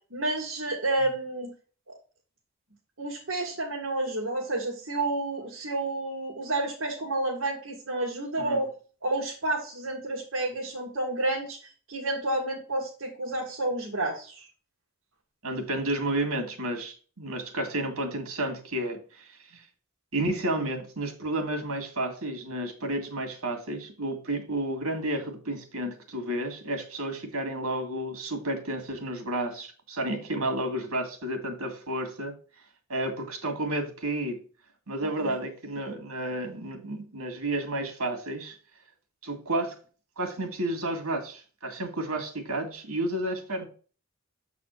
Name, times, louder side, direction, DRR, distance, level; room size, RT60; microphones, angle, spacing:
voice 1, 0.1-1.5 3.0-8.7 9.0-11.6 11.9-14.4 35.2-35.3, right 2 dB, 60° right, -4 dB, 1.8 m, -30 dB
voice 2, 15.4-19.6 20.1-32.3 32.9-34.4 34.9-38.6 39.2-39.8 40.2-43.7, right 1 dB, 80° right, 4 dB, 2.1 m, -31 dB
7.5 x 4.2 x 4.5 m, 0.38 s
head